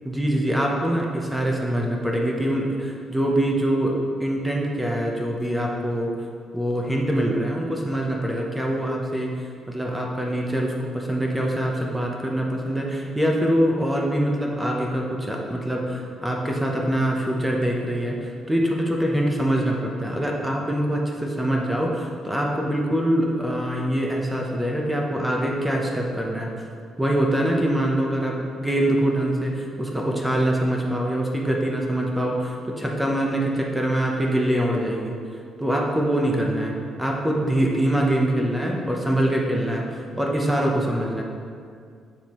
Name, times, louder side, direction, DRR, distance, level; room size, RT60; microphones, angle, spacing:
voice 1, 0.1-6.1 6.5-9.3 9.7-26.5 27.0-35.2 35.6-36.7 37.0-41.2, right 1 dB, 10° right, -1 dB, 0.9 m, -24 dB
7.5 x 6.3 x 3.1 m, 2.3 s
cardioid pair, 90°, 0 cm